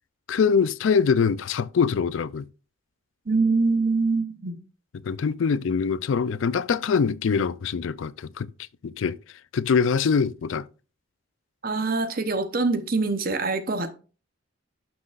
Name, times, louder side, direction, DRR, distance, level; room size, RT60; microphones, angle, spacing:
voice 1, 0.3-2.5 4.9-8.5 8.8-9.2 9.5-10.7, left 6 dB, 65° left, 0.4 m, -23 dB
voice 2, 3.3-4.6 11.6-13.9, right 3 dB, 45° right, 0.8 m, -24 dB
12.0 x 6.0 x 2.5 m
head